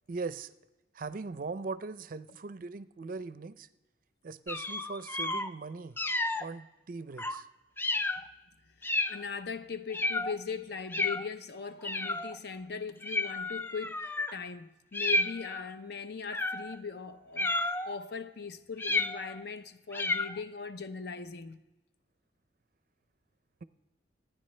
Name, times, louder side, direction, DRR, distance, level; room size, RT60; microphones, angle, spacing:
voice 1, 0.1-0.5 0.9-3.7 4.2-6.0 6.4-7.5, right 4 dB, 50° right, 0.5 m, -40 dB
sound 1, 4.5-5.5 6.0-6.5 7.2-7.4 7.8-8.2 8.8-9.3 9.9-10.4 10.9-11.3 11.8-12.4 13.0-14.3 14.9-15.7 16.3-16.8 17.4-18.0 18.8-19.4 19.9-20.4, left 2 dB, 10° left, 0.3 m, -32 dB
voice 2, 8.8-21.6, left 5 dB, 65° left, 0.7 m, -40 dB
26.0 x 9.7 x 3.2 m
head